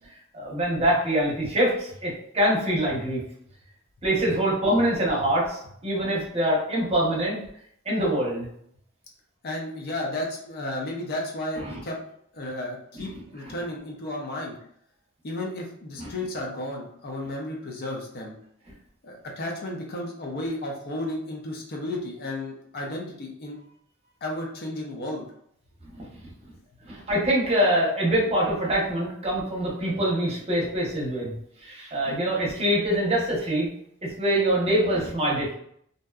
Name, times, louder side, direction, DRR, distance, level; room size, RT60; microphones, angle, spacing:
voice 1, 0.3-3.2 4.0-7.4 7.9-8.5 12.9-13.1 13.4-13.5 16.0-16.1 25.9-26.1 26.8-33.7 34.0-35.5, right 1 dB, 30° right, -4 dB, 0.8 m, -24 dB
voice 2, 9.4-12.0 12.3-14.6 15.2-18.3 19.0-23.6 24.2-25.3, left 1 dB, 50° left, -1 dB, 0.5 m, -33 dB
2.6 x 2.1 x 2.3 m, 0.69 s
head